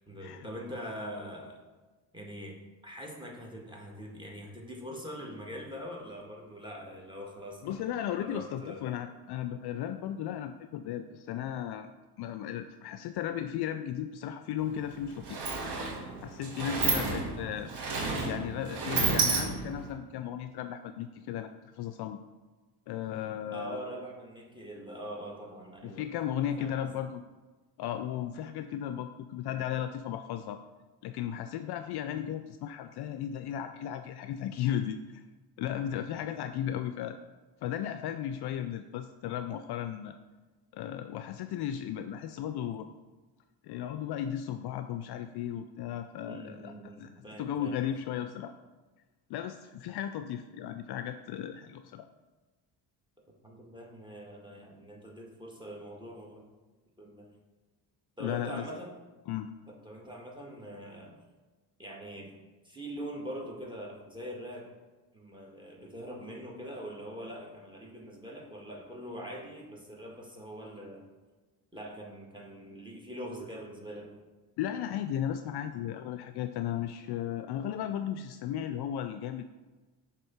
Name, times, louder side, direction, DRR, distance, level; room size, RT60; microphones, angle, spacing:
voice 1, 0.0-1.6 2.1-2.6 2.8-9.0 16.9-17.3 23.5-26.1 26.6-26.9 36.1-36.2 46.3-48.0 53.4-56.5 57.0-57.3 58.2-58.9 59.7-61.2 61.8-62.3 62.6-64.7 65.1-71.1 71.7-74.2, equal, 10° right, 0 dB, 1.8 m, -43 dB
voice 2, 7.6-11.9 12.2-15.4 16.2-17.7 18.2-22.2 22.9-23.8 25.8-27.2 27.8-30.6 31.0-35.2 35.6-37.2 37.6-40.1 40.7-42.9 43.6-46.7 47.0-47.1 47.4-48.5 49.3-52.0 58.2-58.7 59.3-59.5 74.6-79.5, left 10 dB, 55° left, 9 dB, 0.5 m, -35 dB
Sliding door, 14.6-14.7 15.0-19.9, right 4 dB, 55° right, 1.6 m, -31 dB
6.3 x 3.6 x 5.6 m, 1.2 s
hypercardioid pair, 65°, 48 cm